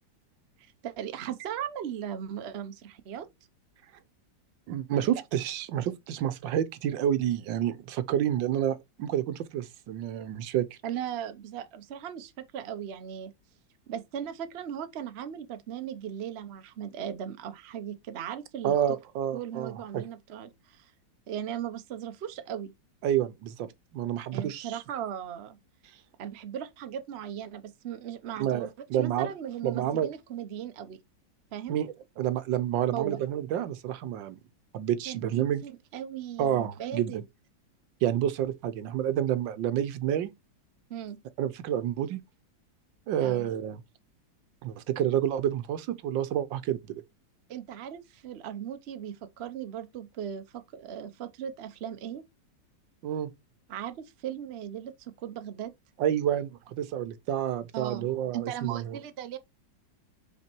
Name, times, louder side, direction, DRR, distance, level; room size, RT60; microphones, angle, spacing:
voice 1, 0.6-3.3 4.9-5.2 10.8-13.3 13.9-19.0 19.3-20.9 21.3-22.7 24.3-25.6 26.2-28.7 29.0-31.0 31.5-31.8 32.9-33.2 35.1-37.2 40.9-41.2 43.2-43.5 47.5-52.2 53.7-55.7 57.7-58.1 58.3-59.4, right 9 dB, 50° right, 0.8 m, -38 dB
voice 2, 4.7-10.8 18.6-20.0 23.0-24.8 28.4-29.3 29.6-30.1 31.7-34.4 34.7-35.6 36.4-37.1 38.0-40.3 41.4-42.2 43.1-43.8 44.6-47.0 53.0-53.3 56.0-59.0, right 10 dB, 80° right, 1.4 m, -29 dB
5.7 x 4.4 x 4.5 m
omnidirectional pair, 2.0 m